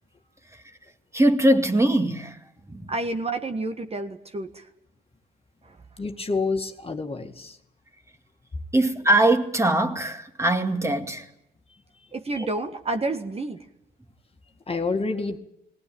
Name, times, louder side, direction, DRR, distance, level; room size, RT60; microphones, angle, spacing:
voice 1, 1.1-2.4 2.7-2.9 8.7-11.3 12.4-12.5, right 1 dB, 15° right, 2.2 m, -21 dB
voice 2, 2.9-4.6 12.1-13.6, right 2 dB, 30° right, 1.6 m, -29 dB
voice 3, 6.0-7.6 14.7-15.4, left 4 dB, 30° left, 2.1 m, -28 dB
19.0 x 18.5 x 8.9 m
cardioid pair, 90°, 20 cm